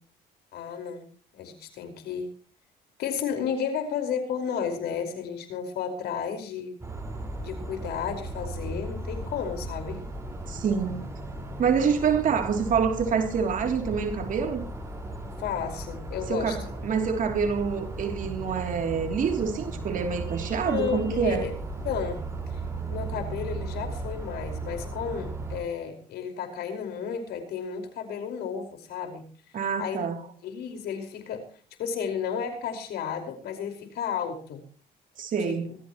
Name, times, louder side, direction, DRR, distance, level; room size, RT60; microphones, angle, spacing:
voice 1, 0.5-2.3 3.0-6.8 7.4-10.0 15.4-16.6 20.6-21.5 21.8-22.6 22.9-29.2 29.8-30.1 30.4-31.4 31.8-34.6 35.4-35.8, left 7 dB, 75° left, 5.1 m, -33 dB
sound 1, 6.8-25.6, right 2 dB, 15° right, 5.0 m, -36 dB
voice 2, 10.5-11.1 11.6-14.7 16.3-21.4 29.5-30.2 35.2-35.7, right 6 dB, 50° right, 3.1 m, -26 dB
25.5 x 14.0 x 3.1 m
cardioid pair, 110°, 17 cm